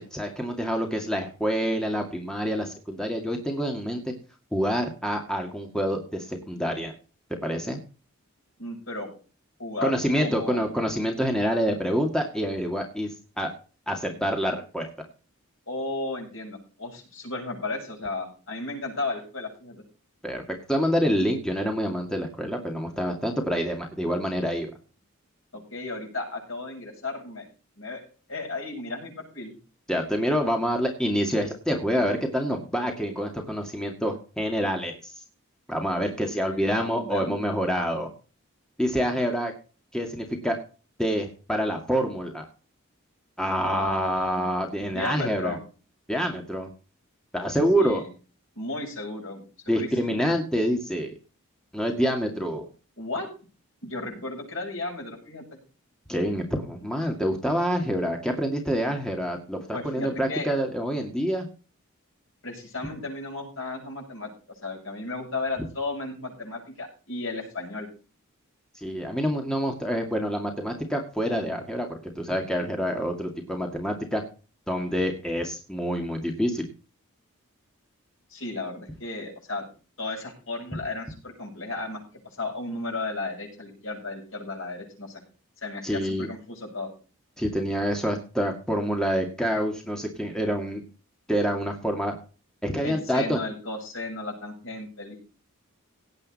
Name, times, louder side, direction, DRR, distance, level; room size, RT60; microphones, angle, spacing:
voice 1, 0.0-4.1 4.5-6.9 7.4-7.8 9.8-13.5 13.9-14.9 20.2-20.4 20.7-24.7 29.9-35.2 35.7-38.1 38.8-39.5 39.9-40.6 41.0-42.4 43.4-45.6 46.1-46.7 47.3-48.0 49.7-51.1 51.7-52.6 56.1-61.5 68.7-74.2 74.7-76.7 85.8-86.3 87.4-90.8 91.3-92.2 92.6-93.4, equal, 5° left, 2 dB, 2.1 m, -27 dB
voice 2, 8.6-9.1 9.6-10.7 15.7-19.8 25.5-27.5 27.8-28.0 28.3-29.5 36.5-37.4 43.6-44.5 44.8-45.6 47.8-48.1 48.6-50.2 53.0-53.3 53.8-55.6 59.7-60.5 62.4-64.3 64.6-67.9 78.3-79.6 80.0-85.2 85.6-86.9 92.8-95.1, left 2 dB, 65° left, 1 dB, 7.8 m, -34 dB
17.5 x 8.5 x 4.2 m, 0.35 s
head